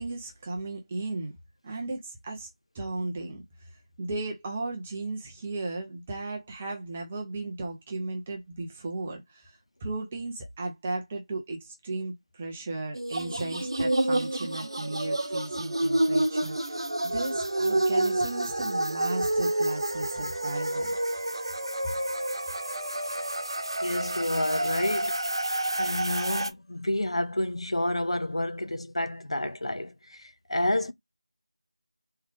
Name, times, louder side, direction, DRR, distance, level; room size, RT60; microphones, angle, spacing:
voice 1, 0.0-1.3 1.6-2.5 2.7-20.9, right 2 dB, 10° right, 0.4 m, -35 dB
sound 1, 12.9-26.5, right 1 dB, 50° right, 0.9 m, -29 dB
voice 2, 23.8-25.1 25.7-30.9, left 1 dB, 65° left, 0.7 m, -29 dB
3.8 x 3.2 x 3.3 m
figure-of-eight pair, 175°, 3 cm